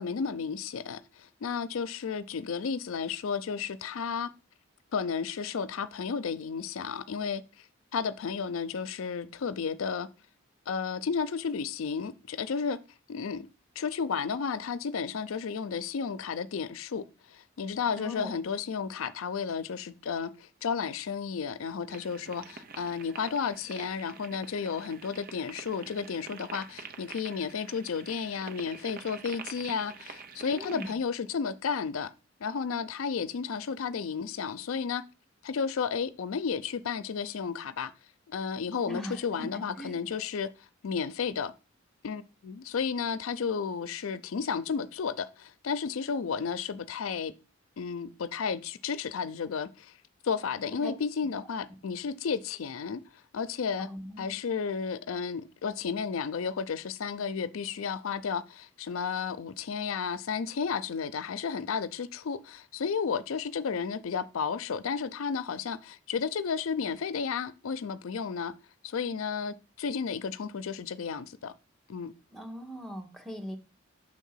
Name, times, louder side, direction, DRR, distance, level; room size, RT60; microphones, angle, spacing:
voice 1, 0.0-4.3 4.9-7.4 7.9-10.1 10.7-12.8 13.1-13.5 13.8-17.0 17.3-32.1 32.4-35.0 35.4-37.9 38.3-40.5 40.8-41.5 42.0-47.3 47.8-49.9 50.2-53.0 53.3-53.9 54.2-68.5 68.8-71.5 71.9-72.1, left 6 dB, 90° left, 0.5 m, -32 dB
voice 2, 17.9-18.4 30.4-30.9 38.8-39.5 39.8-39.9 50.8-50.9 53.8-54.2 72.3-73.6, equal, ahead, 1.0 m, -39 dB
sound 1, 21.9-31.0, right 5 dB, 45° right, 0.8 m, -46 dB
6.3 x 3.6 x 5.5 m
head